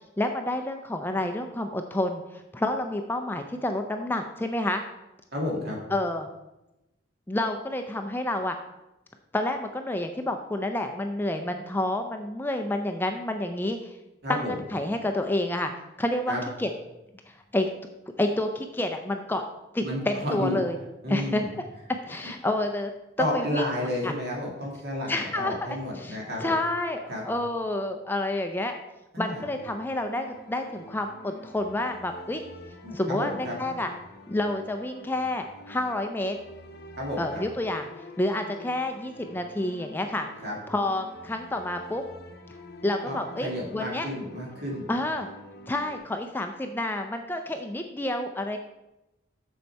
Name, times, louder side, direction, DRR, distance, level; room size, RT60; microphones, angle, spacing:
voice 1, 0.2-4.8 5.9-6.3 7.3-8.6 9.3-13.9 14.3-15.7 16.0-16.7 17.3-17.7 18.1-19.4 19.7-20.8 21.1-21.4 22.1-22.9 23.3-23.6 24.0-24.1 25.1-28.8 29.2-32.4 32.9-33.9 34.3-36.4 37.2-37.9 38.2-40.3 40.7-42.0 42.8-44.1 44.9-45.3 45.7-48.6, left 1 dB, 10° left, 5 dB, 0.4 m, -29 dB
voice 2, 5.3-5.8 14.2-14.5 16.3-16.4 19.8-20.6 21.0-21.5 23.2-26.5 27.1-27.2 29.1-29.4 32.8-33.6 37.0-37.4 40.4-40.6 43.0-44.9, left 1 dB, 55° right, -2 dB, 2.3 m, -31 dB
sound 1, 29.3-46.0, left 1 dB, 50° left, 0.8 m, -47 dB
6.8 x 6.5 x 4.5 m, 0.96 s
head